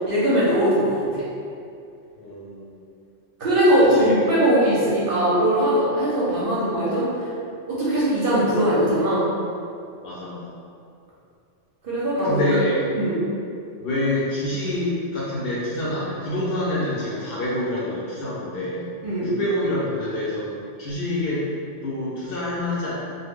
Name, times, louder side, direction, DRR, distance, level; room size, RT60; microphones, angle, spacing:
voice 1, 0.1-1.3 3.4-7.3 7.7-9.3 11.8-12.4 12.9-13.2 19.0-19.3, equal, 60° right, -8 dB, 0.7 m, -20 dB
voice 2, 2.2-2.7 4.0-4.1 10.0-10.5 12.2-12.9 13.8-18.9 19.2-21.4 21.8-22.9, left 1 dB, 60° left, -8 dB, 0.6 m, -26 dB
2.0 x 2.0 x 3.4 m, 2.5 s
omnidirectional pair, 1.2 m